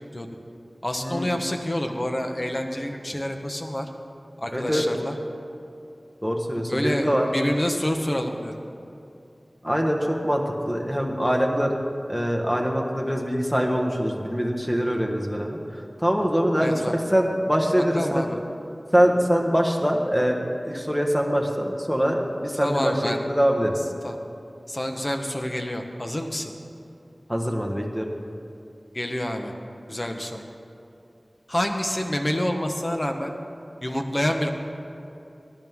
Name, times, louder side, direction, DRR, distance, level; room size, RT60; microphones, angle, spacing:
voice 1, 0.8-3.9 4.4-5.2 6.7-8.6 16.6-17.0 17.9-18.4 22.6-23.2 24.0-24.2 24.7-26.5 28.9-29.5 29.9-30.4 31.5-33.3 33.8-34.5, left 1 dB, 35° left, 4 dB, 1.2 m, -27 dB
voice 2, 4.5-4.8 6.2-7.3 9.6-11.7 12.1-15.6 16.0-16.8 17.1-18.2 18.9-23.7 27.3-28.1, equal, 5° left, 1 dB, 1.5 m, -23 dB
19.0 x 11.0 x 3.7 m, 2.6 s
wide cardioid pair, 50°, 0 cm